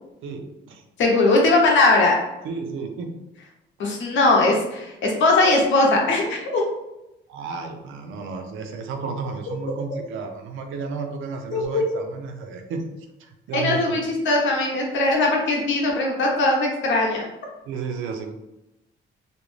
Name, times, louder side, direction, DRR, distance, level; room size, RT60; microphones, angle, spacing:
voice 1, 0.2-0.8 2.4-3.1 7.3-12.8 13.2-14.0 17.7-18.3, right 5 dB, 80° right, 5 dB, 0.5 m, -32 dB
voice 2, 1.0-2.2 3.8-6.6 11.5-11.6 13.5-17.3, left 2 dB, 70° left, -1 dB, 0.8 m, -20 dB
2.5 x 2.1 x 3.1 m, 0.92 s
cardioid pair, 90°, 20 cm